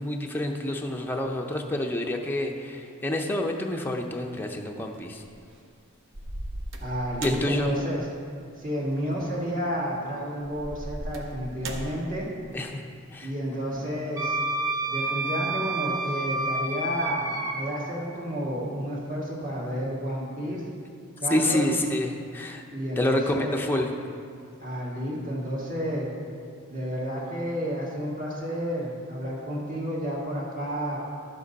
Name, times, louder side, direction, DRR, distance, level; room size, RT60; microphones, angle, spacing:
voice 1, 0.0-5.2 7.2-7.7 12.5-12.8 13.1-13.3 21.3-22.6 23.0-23.9, left 1 dB, 10° left, 2 dB, 0.6 m, -28 dB
sound 1, 4.9-5.4 6.1-7.6 8.9-9.1 10.4-12.1, right 1 dB, 60° right, 0.9 m, -37 dB
voice 2, 6.8-8.1 8.6-12.3 13.2-14.4 14.9-20.6 21.2-21.6 22.7-23.6 24.6-26.1 26.7-31.0, equal, 35° right, -5 dB, 1.8 m, -31 dB
Wind instrument woodwind instrument, 14.2-17.5, right 2 dB, 15° right, 0.9 m, -29 dB
11.5 x 7.6 x 4.1 m, 2.3 s
head